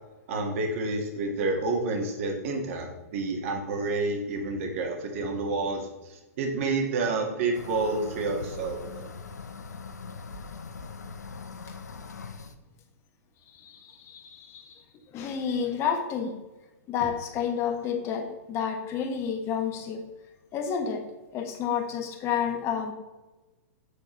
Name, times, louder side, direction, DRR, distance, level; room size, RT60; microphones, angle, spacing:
voice 1, 0.3-2.9 3.1-9.1, right 3 dB, 55° right, 2 dB, 1.9 m, -29 dB
sound 1, 7.5-12.6, left 4 dB, 85° left, 0.7 m, -41 dB
voice 2, 13.5-14.8 15.1-16.3 16.9-20.0 20.5-21.0 21.3-22.9, left 7 dB, 30° left, 4 dB, 1.3 m, -30 dB
8.2 x 6.6 x 3.2 m, 1.1 s
hypercardioid pair, 120°, 9 cm